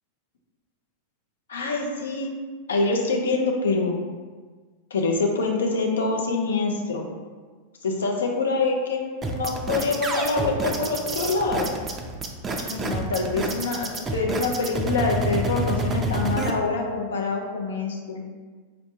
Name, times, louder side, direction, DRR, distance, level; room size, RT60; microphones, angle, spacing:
voice 1, 1.5-2.3 2.7-4.0 4.9-7.1 7.8-11.8 12.6-18.2, left 3 dB, 65° left, 1 dB, 0.5 m, -25 dB
sound 1, 9.2-16.5, right 2 dB, 20° right, 0.3 m, -28 dB
4.0 x 2.1 x 2.7 m, 1.5 s
figure-of-eight pair, 90°, 0 cm